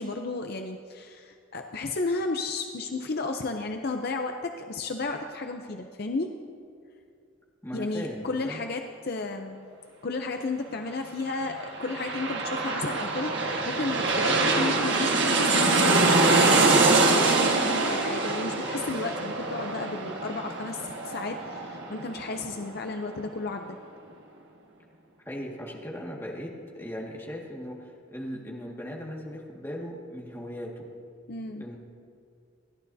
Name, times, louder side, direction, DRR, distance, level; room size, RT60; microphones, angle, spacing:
voice 1, 0.0-6.3 7.7-9.6 10.0-23.8 31.3-31.7, left 3 dB, 50° left, 5 dB, 0.6 m, -33 dB
voice 2, 7.6-8.6 25.3-26.5 26.7-30.9 31.6-31.8, equal, 10° left, -3 dB, 1.9 m, -38 dB
sound 1, 11.5-22.9 23.2-23.3, right 3 dB, 60° right, 1.6 m, -24 dB
28.5 x 11.5 x 2.8 m, 2.4 s
head